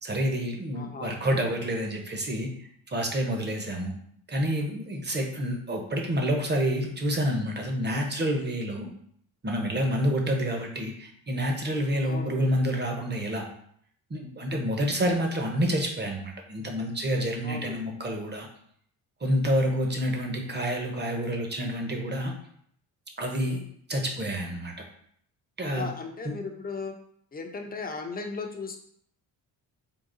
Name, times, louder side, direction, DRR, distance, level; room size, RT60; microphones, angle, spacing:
voice 1, 0.0-2.5 2.9-3.9 4.3-8.9 9.4-13.4 14.1-18.5 19.2-22.3 23.2-23.6 23.9-24.7 25.6-25.9 26.2-26.4, equal, 25° right, 2 dB, 0.9 m, -28 dB
voice 2, 0.7-1.4 12.0-12.5 17.4-17.9 25.6-26.9 27.3-28.8, left 4 dB, 20° left, 3 dB, 0.7 m, -37 dB
3.8 x 2.3 x 3.9 m, 0.66 s
cardioid pair, 80°, 42 cm